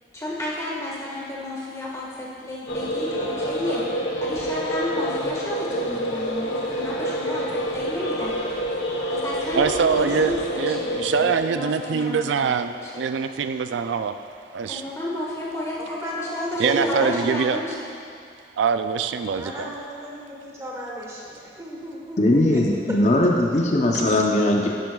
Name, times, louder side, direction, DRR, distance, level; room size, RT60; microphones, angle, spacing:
voice 1, 0.1-3.8 4.2-8.3 9.1-12.5 12.8-13.1 14.7-17.9, left 1 dB, 15° left, -6 dB, 1.5 m, -32 dB
sound 1, 2.7-11.4, equal, 90° left, 1.1 m, -27 dB
voice 2, 8.7-9.1 9.5-14.2 14.5-14.8 16.6-17.6 18.6-19.7, right 6 dB, 90° right, 9 dB, 0.4 m, -24 dB
voice 3, 15.8-17.2 19.3-23.0, equal, 15° right, -3 dB, 1.2 m, -34 dB
voice 4, 22.2-24.7, left 1 dB, 40° left, -1 dB, 0.6 m, -19 dB
11.0 x 10.5 x 2.3 m, 2.4 s
head